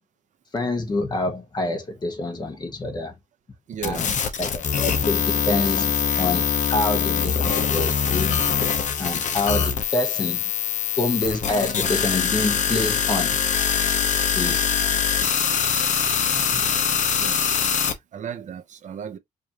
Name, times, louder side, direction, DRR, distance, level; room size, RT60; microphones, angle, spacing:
voice 1, 0.5-3.1 3.8-4.1 4.4-8.4 9.0-10.5 11.0-13.4 14.3-14.7 16.3-16.4, left 2 dB, 30° left, 1.1 m, -27 dB
voice 2, 3.7-4.3 17.2-19.2, right 8 dB, 55° right, 0.7 m, -36 dB
sound 1, 3.8-17.9, left 7 dB, 55° left, 0.8 m, -23 dB
4.9 x 2.6 x 2.9 m
wide cardioid pair, 135°, 15 cm